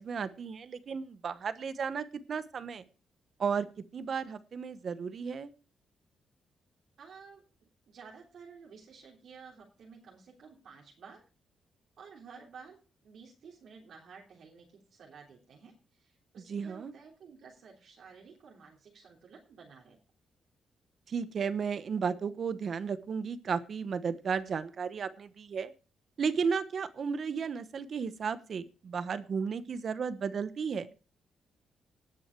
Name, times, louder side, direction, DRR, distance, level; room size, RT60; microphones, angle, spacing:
voice 1, 0.0-2.8 3.4-3.7 3.9-5.5 16.5-16.9 21.1-25.7 26.2-30.9, right 6 dB, 55° right, 13 dB, 1.1 m, -34 dB
voice 2, 7.0-11.2 12.0-20.0, right 5 dB, 70° right, -2 dB, 3.3 m, -53 dB
18.5 x 6.4 x 4.5 m, 0.35 s
cardioid pair, 85°, 0 cm